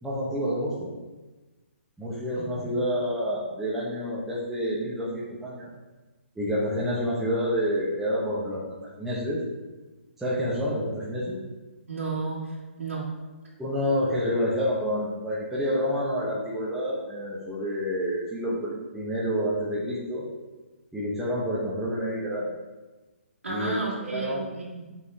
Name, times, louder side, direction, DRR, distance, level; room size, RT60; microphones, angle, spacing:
voice 1, 0.0-0.9 2.0-5.7 6.4-8.6 9.0-9.4 10.2-11.4 13.6-20.2 20.9-22.5 23.5-23.8 24.0-24.4, equal, 5° right, -8 dB, 1.0 m, -28 dB
voice 2, 11.9-13.1 23.4-24.8, right 3 dB, 90° right, -8 dB, 1.9 m, -33 dB
7.5 x 5.5 x 2.8 m, 1.2 s
hypercardioid pair, 155°, 7 cm